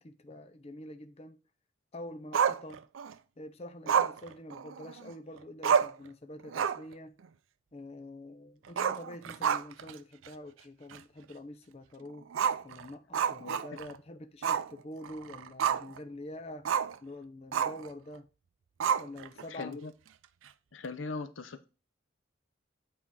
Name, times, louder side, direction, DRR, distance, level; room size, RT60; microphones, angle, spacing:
voice 1, 0.0-1.4 1.9-2.8 3.4-7.1 7.7-12.3 12.6-18.3 19.0-19.8, left 1 dB, 30° left, 0.6 m, -46 dB
Growling, 2.3-3.1 3.9-5.1 5.4-5.5 5.6-6.1 6.4-6.9 7.2-7.3 8.7-9.9 10.3-10.4 10.9-11.0 12.3-14.0 14.4-14.7 15.0-16.0 16.7-17.0 17.5-17.9 18.8-19.4, right 7 dB, 85° right, 0.4 m, -29 dB
voice 2, 19.5-19.9 20.7-21.7, left 3 dB, 80° left, 0.7 m, -39 dB
8.5 x 4.3 x 3.7 m
head